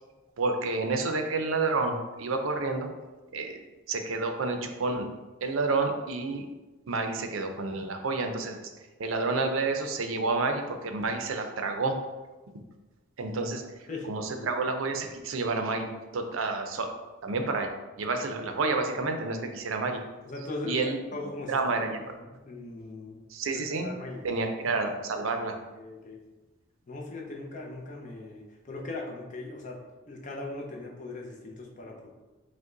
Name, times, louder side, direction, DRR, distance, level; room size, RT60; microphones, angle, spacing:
voice 1, 0.4-2.9 3.3-3.6 3.9-5.1 5.4-6.4 6.9-8.6 9.0-12.0 13.2-13.6 14.0-15.9 16.1-16.9 17.2-17.7 18.0-20.0 20.6-21.0 21.5-22.0 23.3-23.9 24.2-25.6, right 3 dB, 90° right, 5 dB, 0.5 m, -29 dB
voice 2, 20.2-21.6 22.2-23.2 23.5-24.2 25.7-26.2 26.9-32.1, left 2 dB, 40° left, 0 dB, 0.6 m, -39 dB
5.1 x 2.2 x 3.8 m, 1.2 s
head